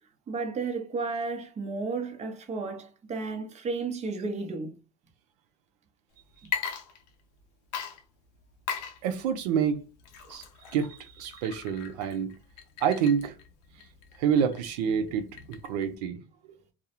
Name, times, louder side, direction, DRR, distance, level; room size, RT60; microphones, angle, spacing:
voice 1, 0.3-4.8, right 4 dB, 35° right, 0.7 m, -33 dB
Water / Liquid, 6.4-7.4 7.7-16.0, left 7 dB, 90° left, 0.5 m, -39 dB
voice 2, 9.0-9.8 10.3-12.3 12.8-13.4 14.2-16.2, right 7 dB, 85° right, 0.4 m, -28 dB
2.3 x 2.1 x 2.8 m
supercardioid pair, 90°, 20 cm